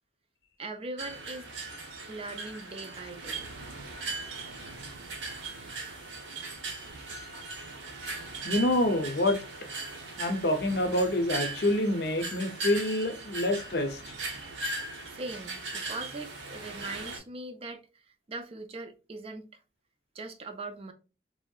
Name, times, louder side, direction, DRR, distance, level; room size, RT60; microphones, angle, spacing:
voice 1, 0.6-1.5 2.1-3.4 15.1-18.0 18.3-19.6 20.1-20.9, right 2 dB, 30° right, 0.4 m, -40 dB
sound 1, 1.0-17.2, right 3 dB, 85° right, 0.8 m, -39 dB
voice 2, 8.4-9.4 10.2-14.1, left 1 dB, 60° left, 0.5 m, -27 dB
3.1 x 2.6 x 2.2 m
head